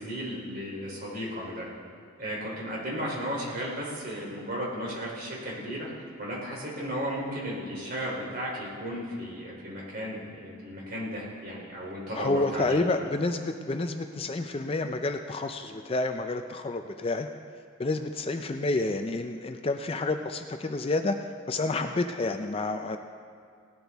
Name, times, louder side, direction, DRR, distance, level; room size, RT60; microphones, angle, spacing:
voice 1, 0.0-1.7 2.2-5.9 6.2-12.8, equal, 45° right, -4 dB, 3.1 m, -34 dB
voice 2, 12.1-17.3 17.8-21.2 21.5-23.0, left 2 dB, 25° left, 7 dB, 0.4 m, -29 dB
18.0 x 12.0 x 3.5 m, 2.2 s
head